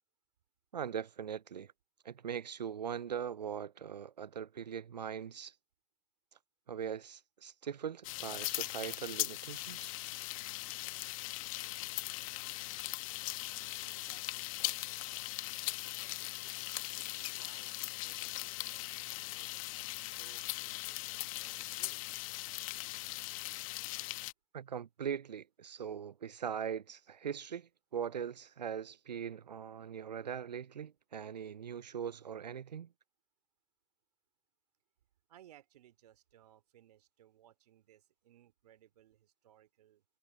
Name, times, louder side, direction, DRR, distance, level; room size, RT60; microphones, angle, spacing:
voice 1, 0.7-1.7 2.0-5.5 6.7-9.9 24.5-32.9, right 8 dB, 85° right, 0.6 m, -41 dB
sound 1, 8.0-24.3, left 21 dB, 55° left, 1.4 m, -40 dB
voice 2, 13.3-22.0 35.3-40.0, right 12 dB, 70° right, 3.0 m, -64 dB
hypercardioid pair, 95°, 21 cm